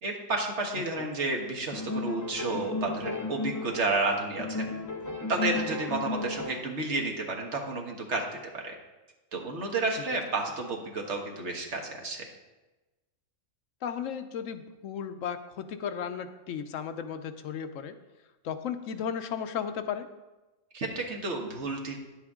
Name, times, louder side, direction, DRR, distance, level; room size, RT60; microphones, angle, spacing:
voice 1, 0.0-4.7 5.3-8.7 9.3-12.3 20.7-22.0, right 3 dB, 60° right, 1 dB, 1.6 m, -31 dB
sound 1, 1.7-4.1 4.4-6.8, left 3 dB, 20° left, 0.7 m, -34 dB
voice 2, 13.8-17.9 18.4-20.1, left 8 dB, 85° left, 9 dB, 1.0 m, -35 dB
10.0 x 7.9 x 3.6 m, 1.1 s
omnidirectional pair, 1.3 m